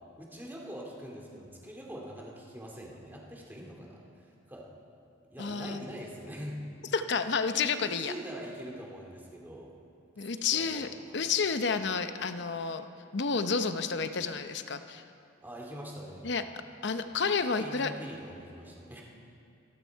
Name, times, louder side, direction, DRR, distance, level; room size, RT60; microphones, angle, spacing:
voice 1, 0.2-4.7 5.3-6.6 7.8-9.8 10.4-11.3 15.4-16.3 17.1-17.2 17.6-19.0, equal, 10° right, -2 dB, 2.2 m, -44 dB
voice 2, 5.4-5.9 6.9-8.1 10.2-10.9 11.1-12.9 13.1-15.0 16.2-16.4 16.8-17.9, left 5 dB, 60° left, 9 dB, 0.7 m, -30 dB
26.0 x 11.5 x 4.6 m, 2.5 s
head